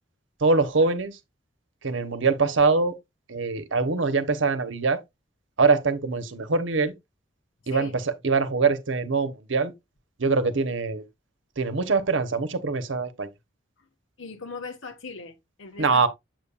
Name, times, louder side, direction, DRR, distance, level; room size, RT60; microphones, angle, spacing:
voice 1, 0.4-1.2 1.8-2.9 3.3-5.0 5.6-6.9 7.7-9.7 10.2-11.0 11.6-13.3 15.8-16.1, right 4 dB, 75° right, 0.9 m, -23 dB
voice 2, 7.6-8.0 14.2-16.1, left 4 dB, 90° left, 1.5 m, -39 dB
7.6 x 6.9 x 2.4 m
head